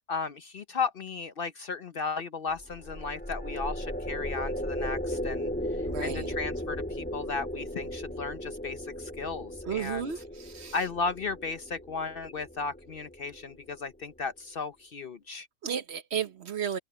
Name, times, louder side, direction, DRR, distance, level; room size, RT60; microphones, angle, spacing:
voice 1, 0.1-10.1 10.7-15.5, left 4 dB, 50° left, 0.8 m, -35 dB
sound 1, 2.5-13.9, equal, 5° left, 3.2 m, -36 dB
voice 2, 5.9-6.4 9.6-10.8 15.6-16.8, right 8 dB, 55° right, 1.1 m, -33 dB
omnidirectional pair, 1.4 m